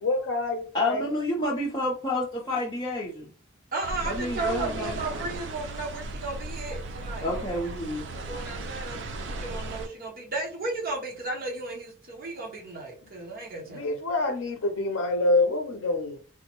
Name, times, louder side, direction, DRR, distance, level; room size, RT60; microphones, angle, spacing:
voice 1, 0.0-1.1 13.7-16.2, left 2 dB, 75° left, 4 dB, 0.5 m, -26 dB
voice 2, 0.7-3.3 4.1-5.0 7.2-8.0, left 1 dB, 20° left, -5 dB, 0.6 m, -29 dB
voice 3, 3.7-7.3 8.1-14.0, right 3 dB, 45° right, -2 dB, 0.9 m, -34 dB
sound 1, 3.8-9.9, right 2 dB, 60° right, 0.5 m, -36 dB
3.6 x 2.1 x 2.9 m, 0.39 s
head